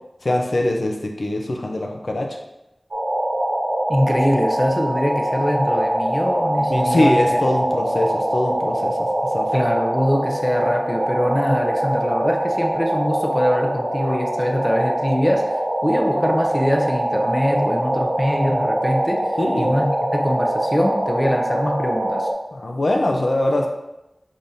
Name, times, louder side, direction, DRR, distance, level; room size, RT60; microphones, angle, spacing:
voice 1, 0.2-2.3 6.7-9.1 9.3-9.5 19.4-19.8 22.5-23.7, left 1 dB, 70° left, 1 dB, 0.6 m, -22 dB
sound 1, 2.9-22.3, right 1 dB, 85° right, 1.0 m, -23 dB
voice 2, 3.9-7.4 9.5-19.3 19.6-22.3, equal, 10° left, 2 dB, 0.5 m, -23 dB
5.4 x 3.4 x 2.7 m, 0.94 s
wide cardioid pair, 65°, 0 cm